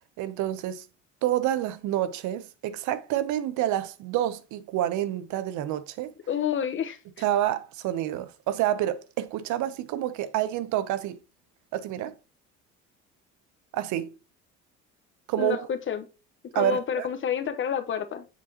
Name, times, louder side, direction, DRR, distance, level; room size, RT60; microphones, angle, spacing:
voice 1, 0.2-0.8 1.2-6.1 7.2-11.2 11.7-12.1 13.7-14.1 15.3-15.7 16.5-17.1, right 12 dB, 70° right, 0.7 m, -28 dB
voice 2, 6.3-7.0 15.4-16.1 16.5-18.3, left 8 dB, 40° left, 0.9 m, -29 dB
6.8 x 4.9 x 2.8 m
cardioid pair, 105°, 30 cm